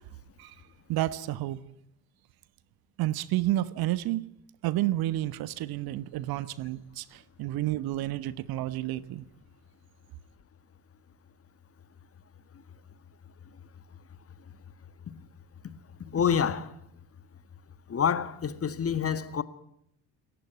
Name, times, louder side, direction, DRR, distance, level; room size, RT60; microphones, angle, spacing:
voice 1, 0.9-1.6 3.0-4.2 4.6-9.3, right 15 dB, 50° right, 1.2 m, -30 dB
voice 2, 16.1-16.7 17.9-19.4, left 7 dB, 30° left, 1.6 m, -27 dB
27.5 x 15.0 x 9.5 m
figure-of-eight pair, 60°, 46 cm